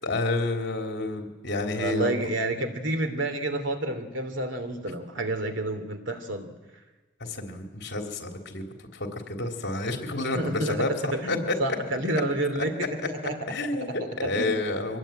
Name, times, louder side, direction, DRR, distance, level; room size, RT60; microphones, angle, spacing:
voice 1, 0.0-2.1 7.2-11.5 12.1-12.2 13.5-15.0, left 2 dB, 60° left, 3 dB, 3.4 m, -30 dB
voice 2, 1.8-6.5 10.3-10.9 11.1-12.8 13.0-14.6, right 1 dB, 65° right, 7 dB, 2.8 m, -30 dB
24.0 x 19.5 x 9.1 m, 1.2 s
head